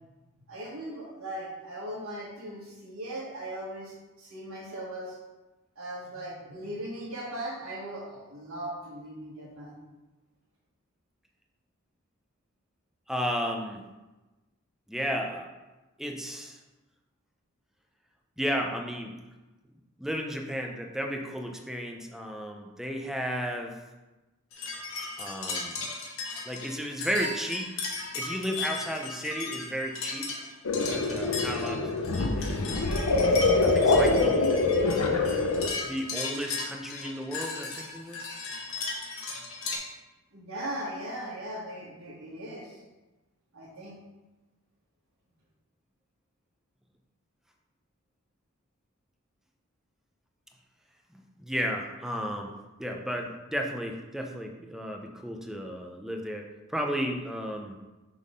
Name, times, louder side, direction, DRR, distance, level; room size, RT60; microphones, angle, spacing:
voice 1, 0.5-5.2 5.7-9.8 40.3-42.8 43.5-44.0, right 1 dB, 75° right, -9 dB, 1.5 m, -38 dB
voice 2, 13.1-13.8 14.9-15.5 16.0-16.6 18.4-19.1 20.0-23.7 25.2-25.9 26.5-27.7 28.1-30.3 30.8-32.8 33.6-34.5 35.9-38.3 51.1-52.5 52.8-56.4 56.7-57.8, equal, ahead, 2 dB, 0.6 m, -33 dB
sound 1, 24.5-39.8, left 4 dB, 70° left, 1.1 m, -36 dB
sound 2, 30.6-35.7, left 3 dB, 90° left, 0.7 m, -24 dB
6.1 x 3.7 x 5.1 m, 1.1 s
head